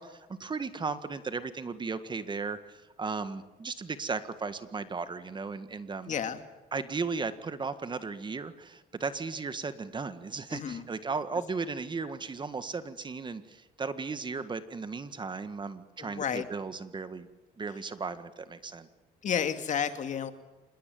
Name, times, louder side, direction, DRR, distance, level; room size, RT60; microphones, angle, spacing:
voice 1, 0.0-6.1 6.7-17.3 17.6-18.9, right 4 dB, 25° right, 11 dB, 1.8 m, -36 dB
voice 2, 6.1-6.4 10.5-10.8 16.0-16.4 19.2-20.3, left 7 dB, 45° left, 9 dB, 2.3 m, -31 dB
26.5 x 20.5 x 9.3 m, 1.1 s
cardioid pair, 110°, 17 cm